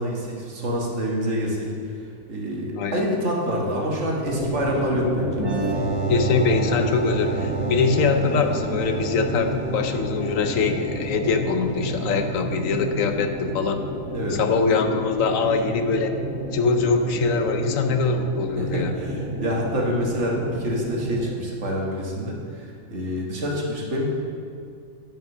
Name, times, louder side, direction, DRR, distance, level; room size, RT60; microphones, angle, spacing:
voice 1, 0.0-1.7 2.3-5.5 14.1-14.4 18.6-24.0, equal, 60° right, -2 dB, 1.6 m, -27 dB
sound 1, 4.2-21.3, equal, ahead, 2.3 m, -30 dB
sound 2, 5.4-12.8, right 5 dB, 40° right, 0.4 m, -32 dB
voice 2, 6.1-13.8 14.3-16.1 16.5-18.9, left 4 dB, 75° left, 7 dB, 1.0 m, -23 dB
9.2 x 5.3 x 6.0 m, 2.3 s
omnidirectional pair, 1.4 m